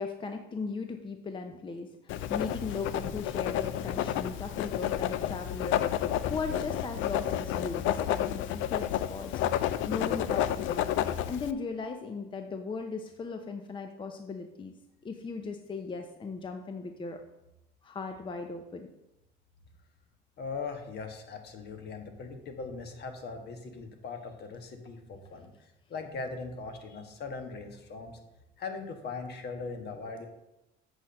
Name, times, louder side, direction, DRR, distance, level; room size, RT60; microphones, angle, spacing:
voice 1, 0.0-1.9 2.3-9.6 9.9-10.9 11.3-14.7 15.0-17.2 17.8-18.9, left 4 dB, 25° left, 6 dB, 0.6 m, -37 dB
Writing, 2.1-11.5, left 11 dB, 75° left, 0.5 m, -31 dB
voice 2, 20.4-25.5 25.9-28.1 28.6-30.3, left 4 dB, 55° left, 6 dB, 1.4 m, -40 dB
7.9 x 4.3 x 6.3 m, 0.91 s
cardioid pair, 105°, 20 cm